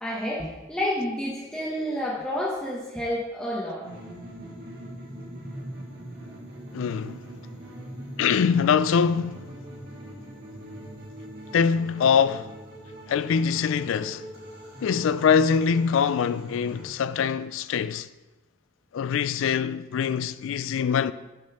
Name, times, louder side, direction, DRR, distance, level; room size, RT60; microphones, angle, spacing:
voice 1, 0.0-3.8, left 1 dB, 5° left, 0.9 m, -29 dB
sound 1, 3.8-16.8, right 1 dB, 45° right, 1.9 m, -41 dB
voice 2, 6.7-7.2 8.2-9.4 11.5-12.5 13.1-14.2 14.8-18.1 18.9-21.1, left 6 dB, 65° left, 0.3 m, -23 dB
6.8 x 5.2 x 5.8 m
head